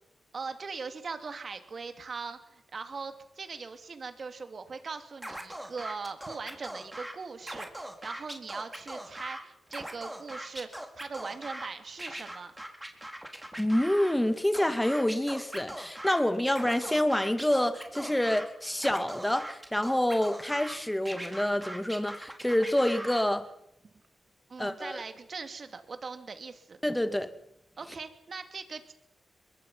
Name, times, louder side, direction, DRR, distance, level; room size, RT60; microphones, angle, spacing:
voice 1, 0.3-12.5 23.8-23.9 24.5-26.8 27.8-28.9, right 4 dB, 55° right, 2.9 m, -40 dB
Scratching (performance technique), 5.2-7.1 7.4-9.4 9.7-11.7 12.0-14.1 14.5-16.2 16.5-18.5 18.8-20.7 21.1-23.2, right 1 dB, 10° right, 4.5 m, -40 dB
voice 2, 13.6-23.5 24.6-25.0 26.8-27.3, left 1 dB, 10° left, 2.5 m, -27 dB
22.0 x 22.0 x 5.8 m
cardioid pair, 65°, 0 cm